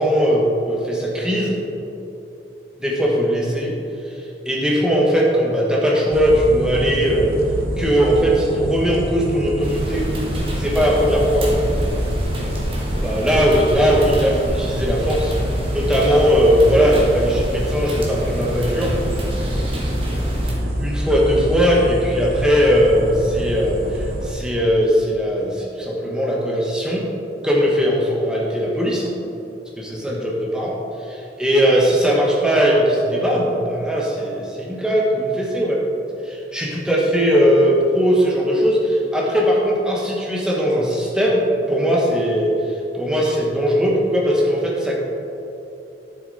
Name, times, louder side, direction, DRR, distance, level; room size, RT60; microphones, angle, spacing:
voice 1, 0.0-1.6 2.8-3.8 4.1-4.2 4.4-7.4 7.6-10.1 10.5-11.5 13.0-15.3 15.7-18.9 20.8-27.1 27.4-29.1 29.8-30.7 31.0-35.8 36.2-44.9, equal, 5° right, -3 dB, 1.3 m, -19 dB
sound 1, 6.1-24.3, equal, 55° right, 1.1 m, -26 dB
sound 2, 9.6-20.5, equal, 30° right, 1.5 m, -28 dB
11.0 x 6.6 x 4.1 m, 2.9 s
head